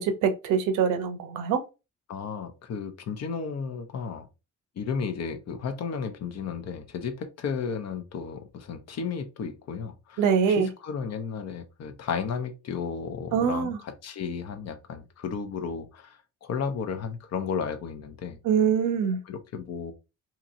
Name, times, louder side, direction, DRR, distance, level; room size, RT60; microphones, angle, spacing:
voice 1, 0.0-1.6 10.2-10.7 13.3-13.8 18.4-19.2, right 7 dB, 90° right, 0.6 m, -24 dB
voice 2, 2.1-4.3 4.8-18.4 19.3-19.9, left 6 dB, 60° left, 0.7 m, -33 dB
2.9 x 2.8 x 2.5 m
cardioid pair, 90°, 30 cm